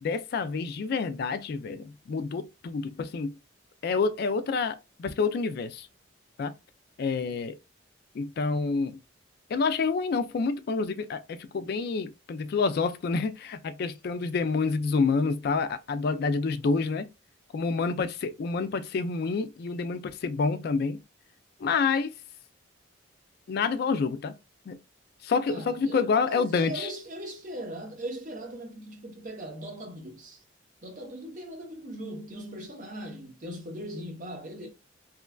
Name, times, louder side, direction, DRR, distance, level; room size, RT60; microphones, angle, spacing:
voice 1, 0.0-3.3 3.8-5.9 6.4-6.5 7.0-7.6 8.1-9.0 9.5-17.1 17.5-21.0 21.6-22.1 23.5-24.3 24.7-24.8 25.2-26.9, left 4 dB, 50° left, 0.3 m, -28 dB
voice 2, 25.5-30.4 30.8-34.7, right 1 dB, 40° right, 0.8 m, -39 dB
3.0 x 2.3 x 2.2 m
head